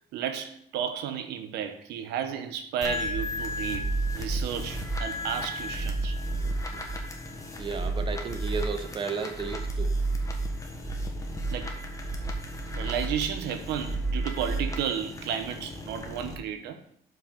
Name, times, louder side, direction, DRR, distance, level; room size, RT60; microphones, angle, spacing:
voice 1, 0.1-3.9 4.1-6.2 11.5-11.8 12.7-16.8, right 8 dB, 85° right, 0.9 m, -33 dB
sound 1, 2.8-16.3, right 1 dB, 20° left, 1.4 m, -32 dB
voice 2, 6.4-6.8 7.6-9.9, right 5 dB, 30° right, 1.0 m, -34 dB
7.1 x 6.0 x 5.2 m
cardioid pair, 110°, 17 cm